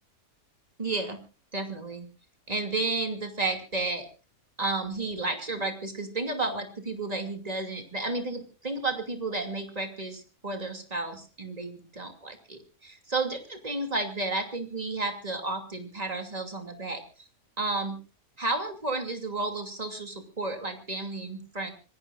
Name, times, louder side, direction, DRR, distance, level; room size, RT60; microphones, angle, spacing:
voice 1, 0.8-1.2 1.5-2.1 2.5-4.1 4.6-17.0 17.6-18.0 18.4-21.7, right 2 dB, 25° right, 5 dB, 2.8 m, -32 dB
25.5 x 18.0 x 2.6 m, 0.35 s
omnidirectional pair, 1.5 m